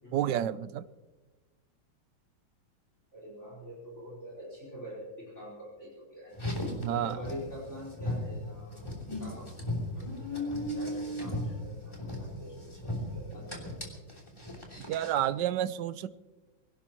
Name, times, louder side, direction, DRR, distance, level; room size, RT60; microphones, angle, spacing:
voice 1, 0.1-0.8 6.8-7.2 14.8-16.1, right 11 dB, 70° right, 14 dB, 1.2 m, -30 dB
voice 2, 3.1-6.3 6.9-8.9 9.2-9.5 9.9-13.8, equal, 35° left, -4 dB, 4.8 m, -45 dB
Car, 6.3-15.3, left 1 dB, 15° left, 3.1 m, -37 dB
23.0 x 17.5 x 3.0 m, 1.2 s
omnidirectional pair, 2.2 m